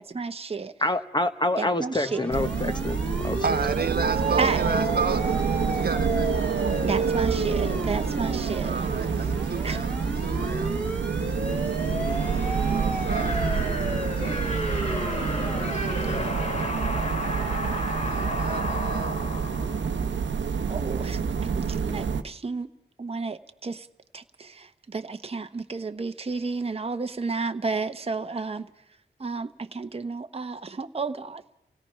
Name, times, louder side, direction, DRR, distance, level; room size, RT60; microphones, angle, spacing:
voice 1, 0.0-0.7 1.6-2.2 4.4-4.6 6.8-8.9 9.6-9.8 20.7-22.7 23.0-23.9 24.1-28.7 29.2-31.4, right 4 dB, 30° right, 0.8 m, -32 dB
voice 2, 0.8-3.4, left 2 dB, 25° left, 1.1 m, -27 dB
sound 1, 1.9-16.4, equal, 5° left, 2.0 m, -35 dB
sound 2, 2.3-22.2, right 6 dB, 90° right, 0.8 m, -27 dB
voice 3, 3.4-5.2 5.6-6.3 8.6-10.7 12.7-13.6 18.0-19.2, right 4 dB, 55° right, 1.2 m, -32 dB
sound 3, 11.5-20.3, left 1 dB, 40° left, 3.8 m, -33 dB
28.0 x 17.5 x 5.6 m
wide cardioid pair, 80°, 19 cm